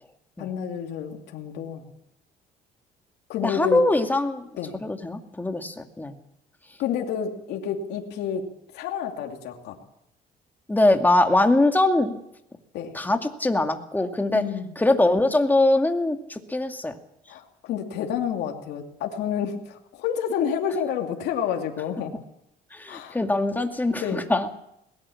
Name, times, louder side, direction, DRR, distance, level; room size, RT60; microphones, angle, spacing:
voice 1, 0.4-1.8 3.3-3.8 4.6-4.8 6.8-8.5 8.7-9.8 12.7-13.0 14.3-14.7 17.3-22.1 22.9-23.2 24.0-24.2, left 8 dB, 80° left, 2 dB, 2.8 m, -29 dB
voice 2, 3.4-4.5 4.8-6.2 10.7-12.1 12.9-14.4 14.8-16.9 22.7-24.5, left 2 dB, 10° left, 5 dB, 2.4 m, -22 dB
21.5 x 19.0 x 7.2 m, 0.80 s
cardioid pair, 110°, 17 cm